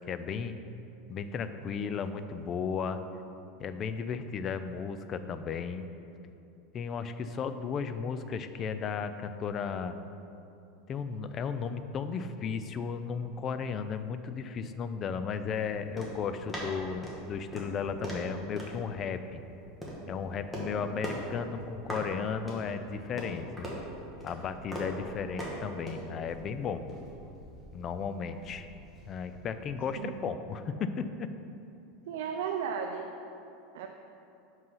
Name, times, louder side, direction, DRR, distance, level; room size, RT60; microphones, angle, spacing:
voice 1, 0.1-0.5 1.1-3.0 3.6-5.9 6.7-10.0 10.9-19.4 20.1-23.7 24.2-26.8 27.7-28.7 29.1-31.3, left 6 dB, 30° left, 10 dB, 0.3 m, -35 dB
sound 1, 15.5-29.7, equal, 5° left, 1.3 m, -42 dB
voice 2, 32.1-33.1 33.7-33.9, right 7 dB, 80° right, 3 dB, 0.5 m, -34 dB
5.4 x 5.4 x 5.6 m, 2.8 s
supercardioid pair, 145°, 0 cm